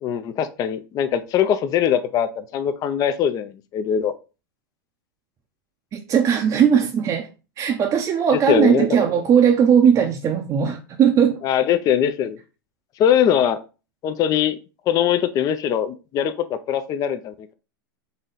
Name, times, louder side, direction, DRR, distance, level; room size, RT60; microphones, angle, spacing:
voice 1, 0.0-4.1 8.3-8.9 11.4-12.4 13.0-13.6 14.0-14.6 14.9-17.5, left 9 dB, 30° left, 0.4 m, -21 dB
voice 2, 5.9-7.3 7.6-11.4, right 8 dB, 30° right, 0.6 m, -18 dB
4.0 x 3.1 x 3.8 m
hypercardioid pair, 115°, 12 cm